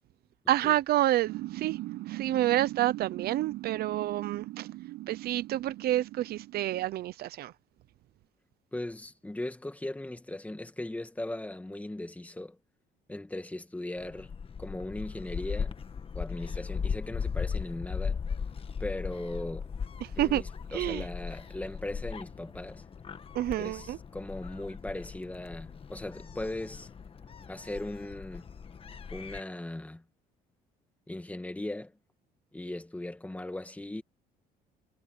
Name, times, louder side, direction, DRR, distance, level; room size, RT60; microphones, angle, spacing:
voice 1, 0.5-1.8 2.1-4.7 5.1-7.5 20.0-20.4 20.7-21.0 23.3-24.0, right 14 dB, 65° right, 0.7 m, -28 dB
sound 1, 1.3-6.8, right 17 dB, 85° right, 6.7 m, -40 dB
voice 2, 8.7-12.6 13.1-14.3 14.6-15.8 16.1-18.2 18.8-19.7 20.2-22.8 23.6-26.9 27.5-28.5 29.1-30.0 31.1-31.9 32.5-34.0, left 1 dB, 10° left, 2.0 m, -38 dB
Gull seagull, 14.0-29.4, left 6 dB, 35° left, 1.5 m, -38 dB
cardioid pair, 110°, 17 cm